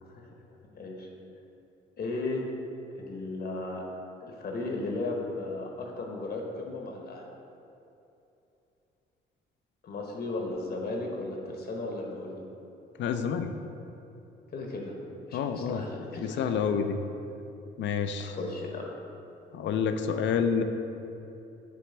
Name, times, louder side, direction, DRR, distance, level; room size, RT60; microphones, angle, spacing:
voice 1, 0.0-1.1 2.0-2.5 2.9-3.8 4.2-7.3 9.8-12.5 14.5-15.0 15.3-16.6 18.2-18.9, left 2 dB, 50° left, 0 dB, 1.0 m, -35 dB
voice 2, 13.0-13.5 15.3-15.8 16.2-17.0 17.8-18.3 19.5-20.6, left 6 dB, 70° left, 8 dB, 0.5 m, -28 dB
7.6 x 3.1 x 4.3 m, 2.8 s
cardioid pair, 90°, 20 cm